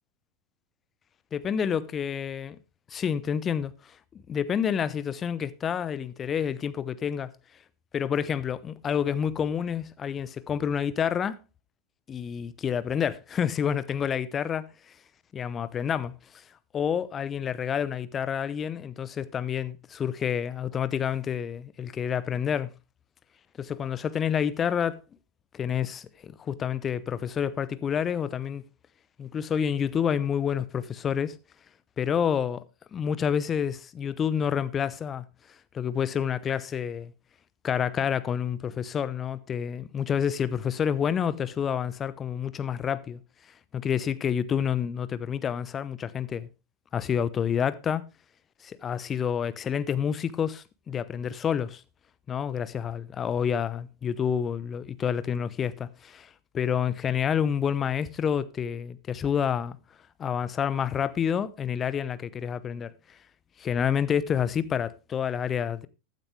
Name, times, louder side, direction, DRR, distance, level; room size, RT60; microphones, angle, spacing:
voice 1, 1.3-2.6 2.9-7.3 7.9-11.4 12.1-14.7 15.3-16.4 16.7-22.7 23.6-25.0 25.5-28.6 29.2-31.3 32.0-32.6 32.9-35.2 35.7-37.1 37.6-43.2 43.7-46.5 46.9-48.1 48.6-51.8 52.3-59.8 60.2-63.2 63.6-65.9, left 8 dB, 25° left, 0.7 m, -28 dB
15.0 x 9.2 x 3.2 m
figure-of-eight pair, 90°, 0 cm